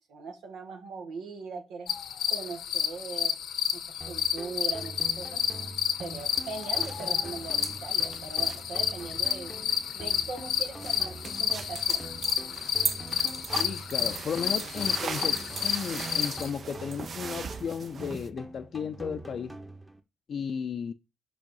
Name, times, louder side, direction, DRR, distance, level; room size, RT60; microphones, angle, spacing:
voice 1, 0.1-1.9 2.3-3.4 3.7-5.4 6.0-9.5 9.9-12.0, right 4 dB, 85° right, 1.5 m, -40 dB
sound 1, 1.9-16.5, left 9 dB, 75° left, 0.8 m, -30 dB
sound 2, 4.0-20.0, right 2 dB, 10° right, 1.0 m, -44 dB
sound 3, 6.1-18.3, right 6 dB, 50° right, 0.5 m, -40 dB
voice 2, 13.5-19.6 20.3-20.9, left 7 dB, 55° left, 0.4 m, -34 dB
5.2 x 4.9 x 5.4 m
cardioid pair, 90°, 0 cm